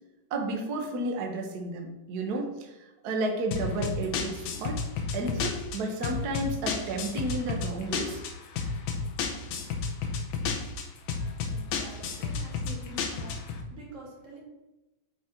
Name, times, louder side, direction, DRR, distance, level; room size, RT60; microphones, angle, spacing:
voice 1, 0.3-2.8 3.0-4.8 5.1-8.2 12.7-12.8, right 2 dB, 75° right, 2 dB, 0.8 m, -32 dB
sound 1, 3.5-13.6, left 5 dB, 85° left, 2.2 m, -32 dB
voice 2, 11.5-13.4 13.7-14.4, right 1 dB, 35° right, -3 dB, 1.4 m, -48 dB
9.3 x 3.8 x 4.4 m, 1.0 s
omnidirectional pair, 3.4 m